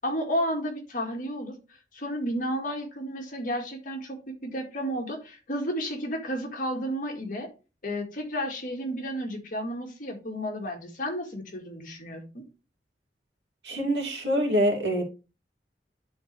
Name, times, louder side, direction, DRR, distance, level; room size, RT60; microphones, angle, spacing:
voice 1, 0.0-1.6 1.9-7.5 7.8-12.4, equal, 50° left, 1.9 m, -32 dB
voice 2, 13.6-15.0, equal, 75° right, 2.5 m, -25 dB
11.0 x 3.9 x 3.3 m
head